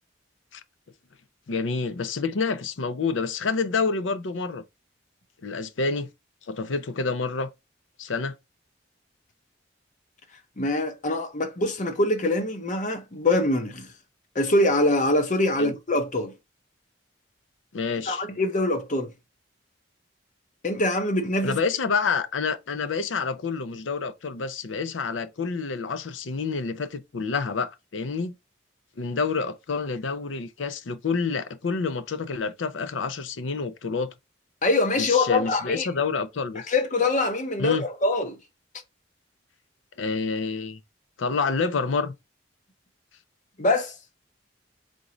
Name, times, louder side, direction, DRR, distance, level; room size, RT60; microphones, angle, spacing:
voice 1, 1.5-4.6 5.4-6.1 6.5-7.5 8.0-8.4 15.6-15.7 17.7-18.2 21.4-28.3 29.0-34.1 35.0-36.7 37.6-37.9 40.0-40.8 41.2-42.1, left 4 dB, 80° left, 0.6 m, -28 dB
voice 2, 10.6-13.9 14.3-16.3 18.1-19.1 20.6-21.6 34.6-35.9 36.7-38.4 43.6-43.9, left 2 dB, 40° left, 0.8 m, -24 dB
3.9 x 3.6 x 3.0 m
head